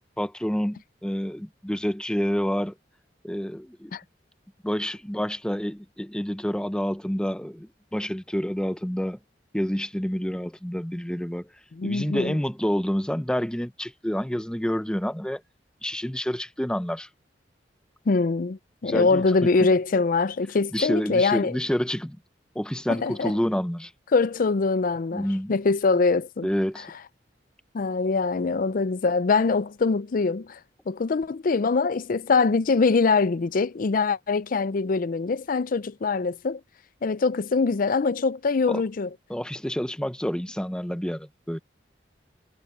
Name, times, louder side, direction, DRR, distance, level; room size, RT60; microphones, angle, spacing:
voice 1, 0.2-2.7 3.2-3.9 4.6-9.2 9.5-11.5 11.8-15.4 15.8-17.1 18.8-19.3 20.7-22.2 22.5-23.9 25.1-25.5 26.4-26.9 38.7-38.8 39.3-41.6, equal, 5° left, 0.7 m, -28 dB
voice 2, 11.7-12.4 18.1-21.6 22.9-23.3 24.1-26.5 27.7-30.6 30.9-36.6 37.0-39.1, left 4 dB, 50° left, 0.5 m, -23 dB
head